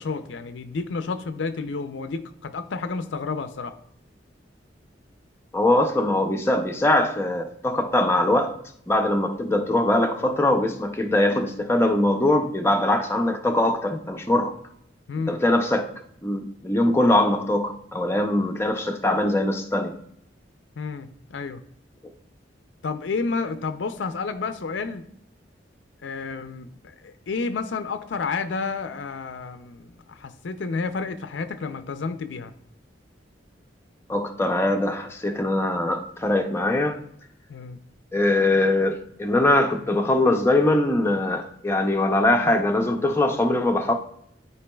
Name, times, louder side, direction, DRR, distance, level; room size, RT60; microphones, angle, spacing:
voice 1, 0.0-3.7 15.1-15.4 20.8-21.6 22.8-25.0 26.0-32.5 37.5-37.8, left 4 dB, 75° left, 0.5 m, -30 dB
voice 2, 5.5-8.6 8.9-14.5 15.3-15.9 16.2-19.9 34.1-37.0 38.1-43.9, left 1 dB, 15° left, 0.5 m, -22 dB
11.5 x 4.5 x 2.3 m
head